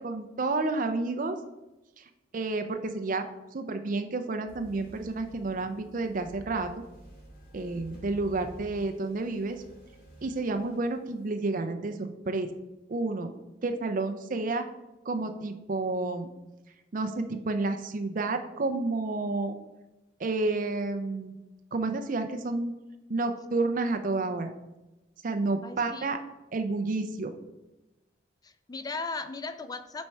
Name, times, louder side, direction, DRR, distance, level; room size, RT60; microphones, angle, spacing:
voice 1, 0.0-1.4 2.0-3.3 3.5-6.7 7.5-9.6 10.2-12.5 12.9-13.3 13.6-14.6 15.1-16.3 16.9-19.6 20.2-21.4 21.7-22.7 23.1-24.5 25.2-26.2 26.5-27.3, right 3 dB, 45° right, 7 dB, 0.5 m, -30 dB
sound 1, 4.4-11.3, right 1 dB, 50° left, 2.6 m, -51 dB
voice 2, 25.6-26.1 28.4-30.1, left 3 dB, 20° left, 11 dB, 0.3 m, -37 dB
7.3 x 4.3 x 4.5 m, 1.0 s
head